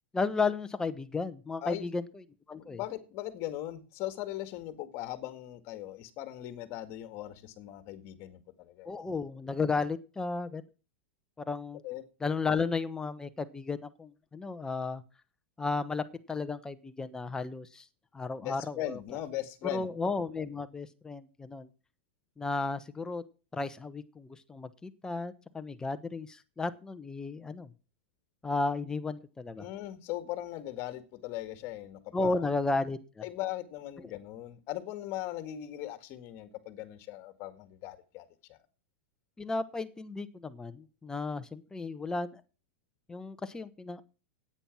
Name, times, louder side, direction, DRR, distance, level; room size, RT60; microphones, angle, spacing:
voice 1, 0.1-2.0 2.5-2.8 8.8-10.6 11.5-11.8 12.2-15.0 15.6-17.8 18.1-19.0 19.7-21.7 22.4-23.2 23.5-27.7 28.4-29.7 32.1-33.2 39.4-42.4 43.1-44.0, left 3 dB, 10° left, 1.0 m, -33 dB
voice 2, 2.5-8.9 11.8-12.0 18.4-19.9 29.6-32.5 33.2-38.6, left 14 dB, 45° left, 2.0 m, -39 dB
9.9 x 8.9 x 6.1 m
hypercardioid pair, 125°, 6 cm